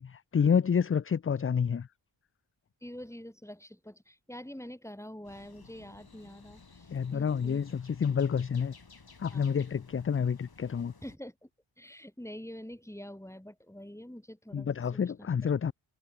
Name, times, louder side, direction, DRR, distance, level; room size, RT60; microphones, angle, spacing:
voice 1, 0.0-1.9 6.9-8.7 9.2-10.9 14.5-15.7, left 7 dB, 30° left, 0.4 m, -28 dB
voice 2, 2.8-7.6 9.3-9.6 11.0-11.5 11.8-15.3, equal, 5° left, 5.8 m, -46 dB
sound 1, 5.2-11.2, left 4 dB, 50° left, 6.1 m, -55 dB
cardioid pair, 60°, 47 cm